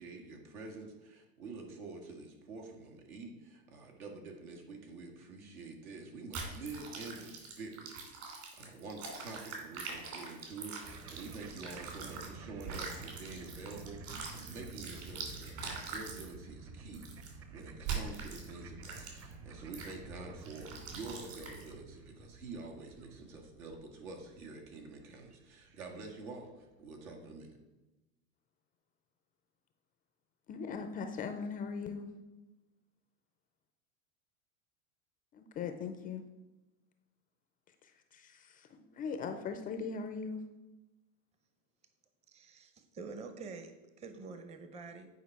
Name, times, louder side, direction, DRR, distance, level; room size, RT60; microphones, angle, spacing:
voice 1, 0.0-8.2 8.5-27.5, right 3 dB, 85° right, 1 dB, 2.0 m, -47 dB
sound 1, 6.3-12.3 12.6-16.3 16.9-17.3 17.8-18.5 18.8-19.3 19.7-19.9 20.4-21.7, right 5 dB, 55° right, 2.9 m, -43 dB
sound 2, 10.8-26.2, right 3 dB, 35° right, 1.0 m, -51 dB
voice 2, 30.5-32.1 35.3-36.2 37.7-40.4, left 5 dB, 20° left, 7 dB, 0.3 m, -40 dB
voice 3, 42.3-45.1, right 4 dB, 15° right, 8 dB, 0.6 m, -47 dB
9.3 x 4.8 x 4.6 m, 1.1 s
supercardioid pair, 130°, 41 cm